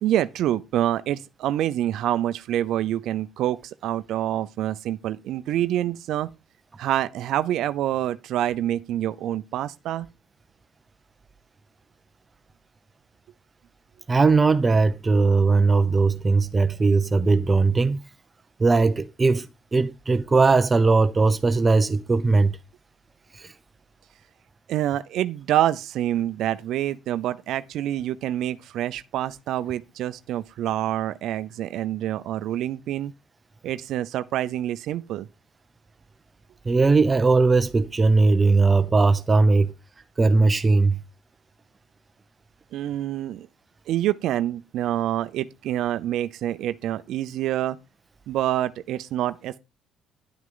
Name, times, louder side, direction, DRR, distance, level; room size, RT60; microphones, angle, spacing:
voice 1, 0.0-6.3 6.8-10.1 24.7-33.1 33.6-35.3 42.7-43.5 43.9-47.8 48.3-49.6, right 12 dB, 65° right, 0.6 m, -26 dB
voice 2, 14.1-18.0 18.6-19.5 19.7-22.5 23.3-23.5 36.7-39.7 40.2-41.0, right 3 dB, 20° right, 0.7 m, -19 dB
11.0 x 9.4 x 3.9 m
cardioid pair, 125°, 0 cm